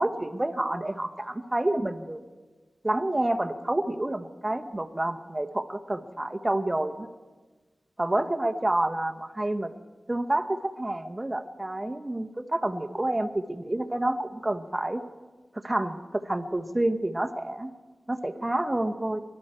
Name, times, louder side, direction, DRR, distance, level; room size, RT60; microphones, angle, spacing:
voice 1, 0.0-2.2 2.8-7.1 8.0-9.7 10.1-15.0 15.6-17.7 18.1-19.2, right 1 dB, 25° right, 7 dB, 1.1 m, -28 dB
24.0 x 12.5 x 4.4 m, 1.3 s
cardioid pair, 45°, 0 cm